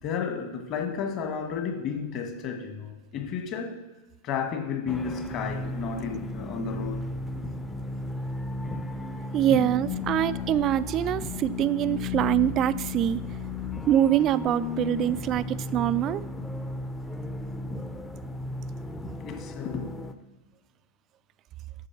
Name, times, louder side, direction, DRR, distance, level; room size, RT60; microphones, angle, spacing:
voice 1, 0.0-3.8 4.2-7.1 9.5-9.7 19.2-19.9, left 6 dB, 35° left, 5 dB, 1.5 m, -32 dB
sound 1, 4.9-20.1, left 3 dB, 10° left, 0.7 m, -34 dB
voice 2, 9.3-13.2 13.9-16.2, right 12 dB, 35° right, 17 dB, 0.4 m, -24 dB
8.3 x 6.9 x 6.0 m, 1.2 s
figure-of-eight pair, 90°, 0 cm